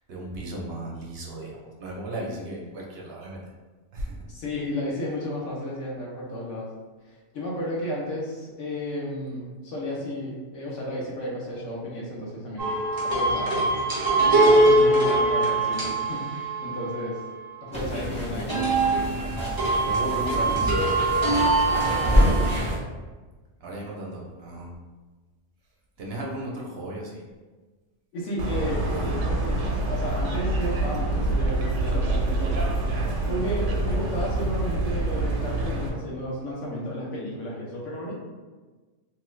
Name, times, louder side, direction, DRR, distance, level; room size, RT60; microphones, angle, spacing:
voice 1, 0.1-3.4 3.9-4.2 19.8-21.0 21.6-22.6 23.6-24.7 26.0-27.2 28.9-29.1, right 1 dB, 60° right, -2 dB, 0.9 m, -35 dB
voice 2, 4.3-6.7 7.1-12.7 13.0-13.7 14.3-17.2 17.6-19.0 21.7-22.6 28.1-32.7 33.3-38.1, equal, 85° left, -4 dB, 1.2 m, -33 dB
sound 1, 12.6-17.2 18.5-22.6, right 2 dB, 25° right, 0.6 m, -22 dB
sound 2, 17.7-22.8, equal, 5° left, 1.0 m, -26 dB
sound 3, 28.4-35.9, right 2 dB, 90° right, 0.9 m, -26 dB
2.9 x 2.4 x 3.1 m, 1.3 s
omnidirectional pair, 1.2 m